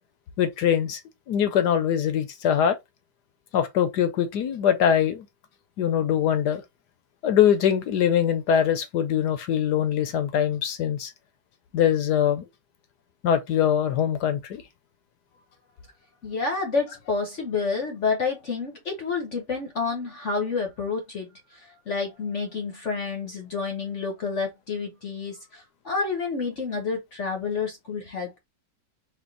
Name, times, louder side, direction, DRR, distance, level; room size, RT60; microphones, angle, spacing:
voice 1, 0.4-1.0 1.3-2.8 3.5-5.3 5.8-6.6 7.2-11.1 11.7-12.4 13.2-14.6, left 9 dB, 70° left, 1.2 m, -22 dB
voice 2, 16.2-21.3 21.5-28.4, left 4 dB, 50° left, 1.0 m, -29 dB
4.3 x 2.6 x 3.9 m
omnidirectional pair, 2.0 m